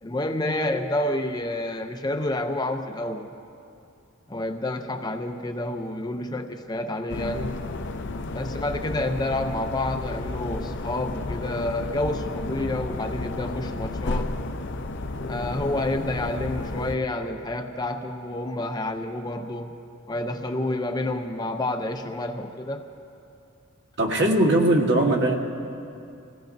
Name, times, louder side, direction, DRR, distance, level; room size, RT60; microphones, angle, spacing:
voice 1, 0.0-3.3 4.3-7.5 8.3-14.3 15.3-19.7 20.1-22.8, left 1 dB, 20° left, 5 dB, 0.5 m, -29 dB
sound 1, 7.1-17.0, left 2 dB, 55° left, 0.6 m, -32 dB
voice 2, 24.0-25.3, right 1 dB, 55° right, 0 dB, 1.6 m, -20 dB
26.0 x 17.0 x 2.6 m, 2.7 s
head